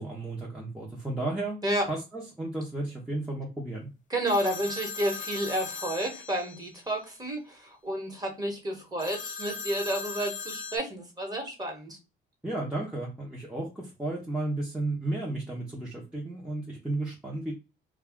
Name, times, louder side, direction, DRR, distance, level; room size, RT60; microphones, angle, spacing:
voice 1, 0.0-1.6 1.9-3.9 12.4-17.5, right 2 dB, 5° right, -4 dB, 0.8 m, -33 dB
voice 2, 4.1-12.0, right 1 dB, 20° right, 2 dB, 1.3 m, -31 dB
sound 1, 4.3-6.8 9.0-10.8, left 4 dB, 40° left, 0.5 m, -38 dB
2.3 x 2.3 x 3.6 m, 0.29 s
cardioid pair, 90°, 20 cm